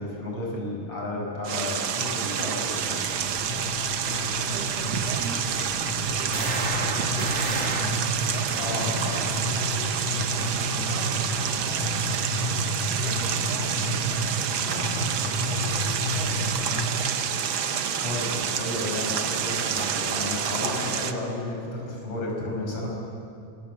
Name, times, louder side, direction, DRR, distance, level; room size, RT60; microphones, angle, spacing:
voice 1, 0.0-3.0 8.6-9.3 15.3-15.5 18.0-22.9, left 1 dB, 40° left, -2 dB, 6.6 m, -32 dB
sound 1, 1.4-21.1, right 8 dB, 80° right, 1.1 m, -28 dB
sound 2, 2.7-16.9, equal, 70° left, 6.1 m, -31 dB
voice 2, 4.0-8.6 8.9-9.3 9.7-12.0 12.4-17.2 17.6-18.0, right 3 dB, 55° right, 1 dB, 2.7 m, -42 dB
sound 3, 6.3-9.7 14.7-15.1 19.8-20.3, right 3 dB, 40° right, 1.0 m, -34 dB
25.0 x 21.5 x 8.4 m, 2.4 s
omnidirectional pair, 3.8 m